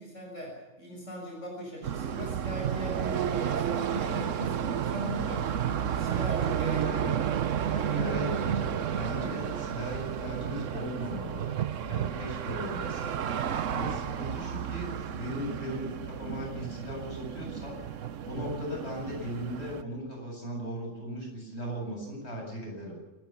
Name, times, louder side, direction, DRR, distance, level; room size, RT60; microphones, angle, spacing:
voice 1, 0.0-7.3 9.2-9.6 13.8-13.9 22.8-22.9, equal, 85° left, -1 dB, 7.0 m, -40 dB
sound 1, 1.8-19.8, right 9 dB, 85° right, 1.2 m, -32 dB
voice 2, 6.7-11.5 11.8-13.2 13.4-17.8 18.2-23.0, equal, 60° left, 0 dB, 8.0 m, -38 dB
27.0 x 14.0 x 7.1 m, 1.2 s
omnidirectional pair, 1.3 m